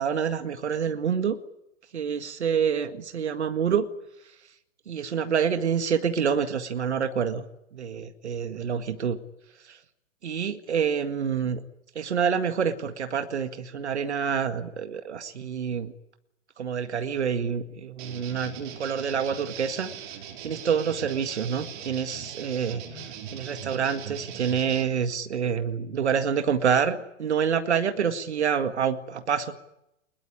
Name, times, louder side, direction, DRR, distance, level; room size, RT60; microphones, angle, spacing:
voice 1, 0.0-1.4 1.9-3.8 4.9-7.5 7.7-9.2 9.6-9.8 10.2-11.6 12.0-15.9 16.6-19.9 20.4-29.5, right 7 dB, 60° right, 9 dB, 1.9 m, -27 dB
sound 1, 18.0-24.8, right 8 dB, 40° right, 4.5 m, -40 dB
23.0 x 21.0 x 9.7 m, 0.83 s
figure-of-eight pair, 115°, 38 cm